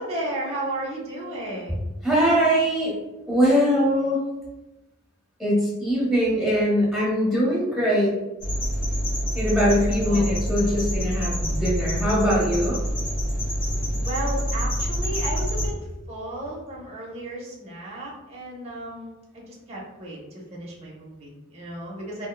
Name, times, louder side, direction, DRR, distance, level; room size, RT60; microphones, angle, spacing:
voice 1, 0.0-1.9 10.0-10.3 13.9-15.8 16.1-20.2 20.5-22.3, right 1 dB, 30° right, -4 dB, 0.7 m, -34 dB
voice 2, 2.0-2.9 3.3-4.2 5.4-8.1 9.3-12.8, equal, ahead, -9 dB, 1.2 m, -22 dB
sound 1, 8.4-15.7, equal, 40° left, 0.9 m, -26 dB
3.6 x 2.1 x 2.2 m, 1.0 s
head